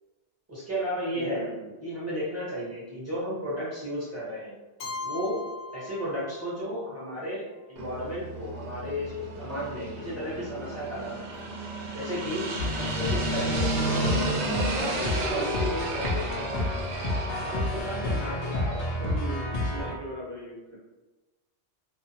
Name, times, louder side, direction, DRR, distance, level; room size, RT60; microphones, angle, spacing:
voice 1, 0.5-1.4 1.8-4.5 5.0-5.4 5.7-11.2 11.9-12.5 12.8-16.7 17.4-19.0 19.5-20.0, equal, 15° right, -9 dB, 1.0 m, -34 dB
voice 2, 1.1-1.7 19.0-20.8, right 1 dB, 30° right, -5 dB, 0.5 m, -39 dB
Keyboard (musical), 4.8-6.7, left 3 dB, 75° left, 0.9 m, -39 dB
sound 1, 7.8-19.3, right 2 dB, 80° right, 0.9 m, -33 dB
sound 2, 12.6-19.9, left 2 dB, 55° left, 0.5 m, -30 dB
2.5 x 2.3 x 2.7 m, 1.1 s
omnidirectional pair, 1.2 m